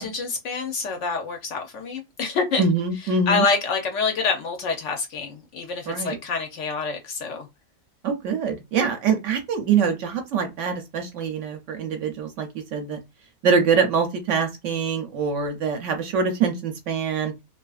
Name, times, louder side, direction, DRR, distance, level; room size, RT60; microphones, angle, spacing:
voice 1, 0.0-2.6 3.3-7.5, left 4 dB, 65° left, 0.8 m, -26 dB
voice 2, 2.6-3.4 5.9-6.2 8.0-13.0 13.4-17.3, right 5 dB, 65° right, 0.8 m, -24 dB
2.6 x 2.5 x 2.3 m
omnidirectional pair, 1.5 m